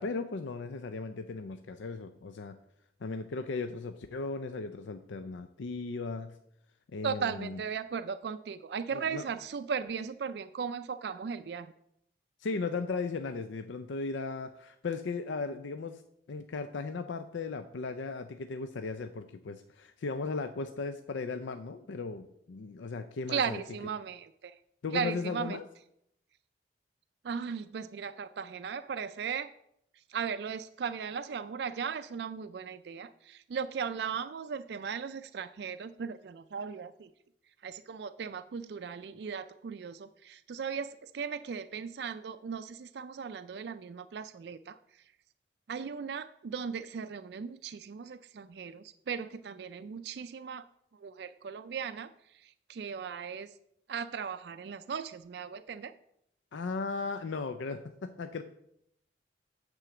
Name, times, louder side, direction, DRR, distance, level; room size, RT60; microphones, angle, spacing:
voice 1, 0.0-2.6 3.0-6.3 6.9-7.6 8.9-9.2 12.4-16.0 16.3-23.6 24.8-25.6 56.5-58.4, left 4 dB, 85° left, 8 dB, 0.5 m, -36 dB
voice 2, 7.0-11.7 23.3-24.6 24.9-25.6 27.2-29.5 30.1-37.1 37.6-44.8 45.7-50.7 51.0-52.1 52.4-53.5 53.9-55.9, right 6 dB, 65° right, 11 dB, 0.3 m, -37 dB
9.0 x 3.8 x 6.9 m, 0.74 s
head